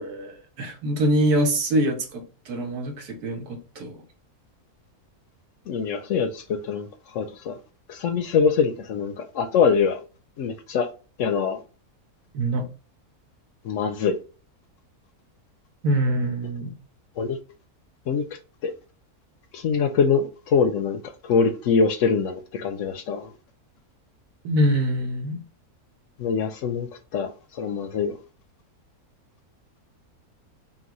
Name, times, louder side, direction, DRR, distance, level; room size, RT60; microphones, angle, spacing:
voice 1, 0.0-4.0 12.3-12.6 15.8-16.7 24.4-25.4, right 1 dB, 85° right, 1.5 m, -24 dB
voice 2, 5.7-6.9 7.1-7.6 7.9-10.0 10.4-10.9 11.2-11.6 13.6-14.1 17.2-17.4 18.1-18.2 18.6-18.7 19.5-23.3 26.2-28.2, left 6 dB, 70° left, 0.8 m, -24 dB
5.8 x 2.4 x 2.9 m
omnidirectional pair, 1.6 m